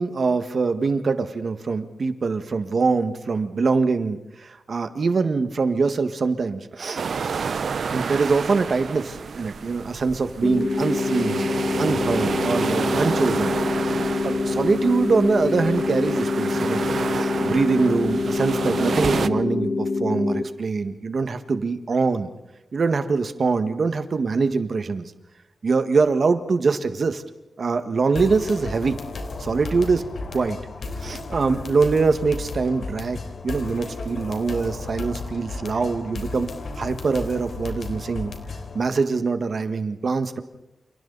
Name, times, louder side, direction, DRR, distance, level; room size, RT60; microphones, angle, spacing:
voice 1, 0.0-7.0 7.9-11.5 11.8-13.6 14.2-16.8 17.1-22.3 22.7-25.0 25.6-27.2 27.6-29.0 29.4-30.1 30.3-30.6 31.0-36.5 36.8-38.3 38.7-40.4, right 4 dB, 55° right, 9 dB, 1.6 m, -23 dB
sound 1, 6.9-19.3, right 5 dB, 70° right, 0.8 m, -29 dB
sound 2, 10.4-20.4, left 3 dB, 35° left, 1.5 m, -25 dB
sound 3, 28.2-38.8, left 3 dB, 70° left, 3.6 m, -34 dB
29.0 x 29.0 x 4.1 m, 0.99 s
wide cardioid pair, 145°, 0 cm